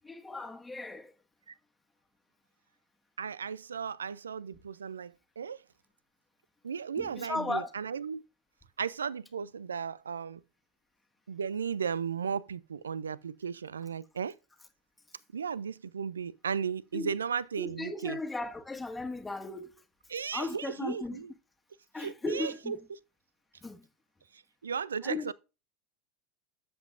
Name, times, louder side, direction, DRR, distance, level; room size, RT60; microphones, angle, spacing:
voice 1, 0.0-1.1 7.0-7.7 16.9-17.1 17.6-19.7 20.3-21.2 21.9-22.8 23.6-23.9 25.0-25.3, left 2 dB, 15° left, 1.5 m, -36 dB
voice 2, 3.2-5.6 6.6-8.2 8.8-10.4 11.3-14.3 15.3-18.2 20.1-21.3 22.0-23.0 24.3-25.3, right 6 dB, 80° right, 0.4 m, -35 dB
12.5 x 7.6 x 2.5 m
figure-of-eight pair, 80°, 0 cm